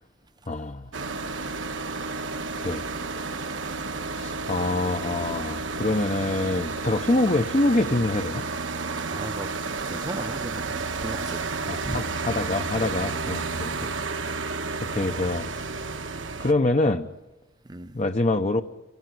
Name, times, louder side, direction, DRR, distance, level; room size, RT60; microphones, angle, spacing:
voice 1, 0.5-0.9 2.6-2.9 4.1-8.5 11.7-13.9 14.8-15.5 16.4-17.1 17.9-18.6, left 2 dB, 35° left, 0.8 m, -25 dB
sound 1, 0.9-16.5, right 4 dB, 70° right, 1.3 m, -31 dB
voice 2, 9.1-9.6 9.9-11.5 11.8-12.1 13.0-13.2 17.6-18.0, right 2 dB, 20° right, 0.8 m, -36 dB
26.5 x 17.5 x 9.4 m
head